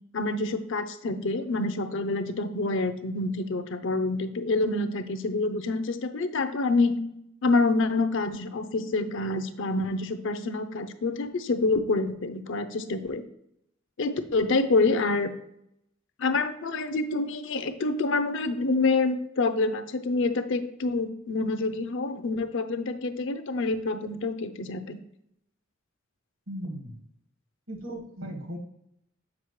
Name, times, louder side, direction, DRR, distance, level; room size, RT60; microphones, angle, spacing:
voice 1, 0.1-7.0 7.4-13.2 14.0-15.3 16.2-25.0, left 3 dB, 60° left, 9 dB, 0.5 m, -27 dB
voice 2, 26.5-27.0 27.7-28.6, equal, 75° right, 3 dB, 1.5 m, -37 dB
7.3 x 5.1 x 3.1 m, 0.77 s
head